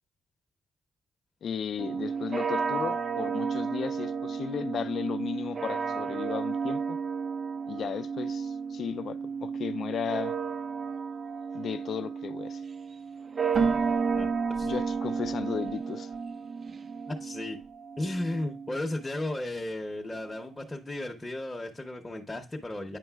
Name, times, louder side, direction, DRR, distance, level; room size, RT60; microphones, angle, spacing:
voice 1, 1.4-7.0 7.7-10.4 11.5-12.6 14.6-16.1, left 7 dB, 60° left, 0.3 m, -35 dB
sound 1, 1.8-19.1, right 6 dB, 40° right, 0.4 m, -33 dB
Keyboard (musical), 13.5-17.2, right 5 dB, 60° right, 1.1 m, -31 dB
voice 2, 14.1-14.7 17.1-17.6 18.0-23.0, left 1 dB, 15° left, 0.7 m, -35 dB
8.9 x 5.3 x 2.3 m
cardioid pair, 90°, 0 cm